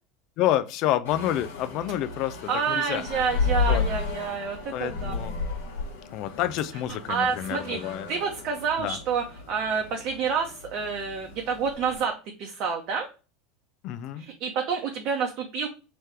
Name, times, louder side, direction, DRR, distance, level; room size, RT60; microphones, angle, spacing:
voice 1, 0.4-3.0 3.7-3.8 4.7-5.4 6.1-8.1 8.8-9.0 13.8-14.3, left 12 dB, 55° left, 11 dB, 0.4 m, -28 dB
sound 1, 1.0-12.0, left 4 dB, 75° left, 1.2 m, -33 dB
voice 2, 2.5-5.1 7.1-13.1 14.4-15.7, right 6 dB, 50° right, 2 dB, 0.7 m, -28 dB
3.2 x 3.0 x 4.6 m, 0.32 s
hypercardioid pair, 80°, 0 cm